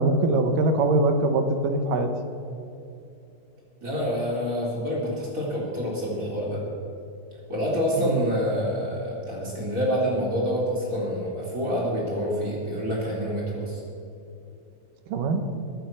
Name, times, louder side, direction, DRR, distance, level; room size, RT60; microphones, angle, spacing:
voice 1, 0.0-2.1 8.0-8.2 15.1-15.4, right 2 dB, 75° right, 7 dB, 2.7 m, -22 dB
voice 2, 3.8-6.6 7.5-13.8, equal, 25° right, -4 dB, 4.2 m, -27 dB
23.0 x 8.8 x 6.4 m, 2.6 s
omnidirectional pair, 3.9 m